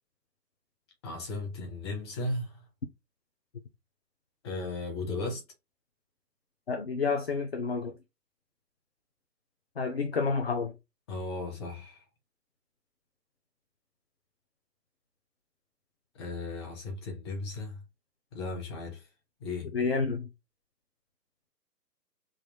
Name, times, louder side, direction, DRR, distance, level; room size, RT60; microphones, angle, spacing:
voice 1, 1.0-2.6 4.4-5.4 11.1-12.0 16.1-17.8 18.3-19.1 19.4-19.7, left 2 dB, 15° left, 0.8 m, -36 dB
voice 2, 6.7-7.9 9.8-10.7 19.7-20.3, left 4 dB, 40° left, 0.5 m, -29 dB
4.1 x 3.6 x 2.2 m
hypercardioid pair, 150°, 50 cm